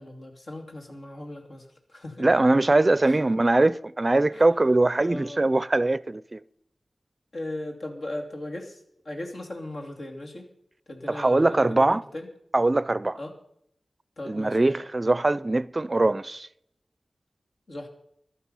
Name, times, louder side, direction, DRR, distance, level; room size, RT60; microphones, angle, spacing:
voice 1, 0.0-2.3 3.0-3.2 4.3-4.6 5.0-5.5 7.3-10.5 10.9-12.3 13.2-13.3 14.2-14.8 17.7-17.9, left 1 dB, 75° left, 2.6 m, -38 dB
voice 2, 2.2-6.4 11.1-12.0 12.5-13.2 14.3-16.5, right 2 dB, 35° right, 0.4 m, -22 dB
14.5 x 11.5 x 5.6 m
wide cardioid pair, 55°, 0 cm